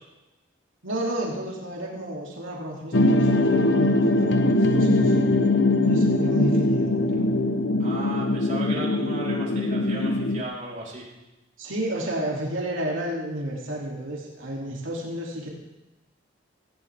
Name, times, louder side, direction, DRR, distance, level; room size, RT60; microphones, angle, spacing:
voice 1, 0.8-5.2 5.8-7.2 11.6-15.5, right 1 dB, 90° right, -3 dB, 2.9 m, -31 dB
sound 1, 2.9-10.4, left 2 dB, 65° left, 0.8 m, -21 dB
voice 2, 7.8-11.1, right 1 dB, 40° right, -5 dB, 4.0 m, -35 dB
17.0 x 15.5 x 3.6 m, 1.0 s
head